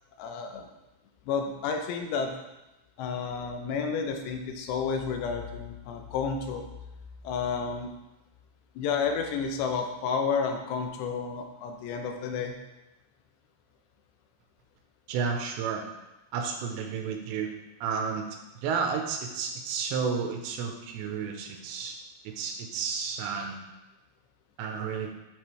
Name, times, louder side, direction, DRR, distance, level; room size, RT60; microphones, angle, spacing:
voice 1, 0.2-0.7 1.3-2.3 3.0-6.6 7.2-7.9 8.8-12.6, left 5 dB, 80° left, 4 dB, 2.9 m, -31 dB
voice 2, 15.1-15.8 16.3-17.5 17.8-18.3 18.6-22.0 22.4-23.6 24.6-25.1, right 6 dB, 90° right, 4 dB, 3.1 m, -31 dB
11.0 x 5.9 x 3.3 m, 0.99 s
omnidirectional pair, 5.0 m